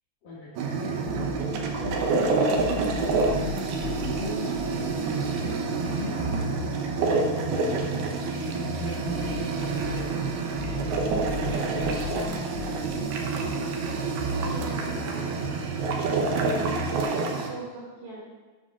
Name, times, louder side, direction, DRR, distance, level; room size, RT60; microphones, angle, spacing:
voice 1, 0.2-4.6 6.0-6.5 7.3-10.2 11.3-13.1 16.4-16.8, left 2 dB, 55° left, -6 dB, 3.1 m, -39 dB
sound 1, 0.6-17.5, right 4 dB, 75° right, 2.6 m, -28 dB
sound 2, 1.1-17.0, left 1 dB, 10° right, 0.8 m, -37 dB
voice 2, 14.4-15.4 16.3-18.2, right 2 dB, 50° right, -6 dB, 3.2 m, -41 dB
13.5 x 9.8 x 2.4 m, 1.3 s
omnidirectional pair, 5.0 m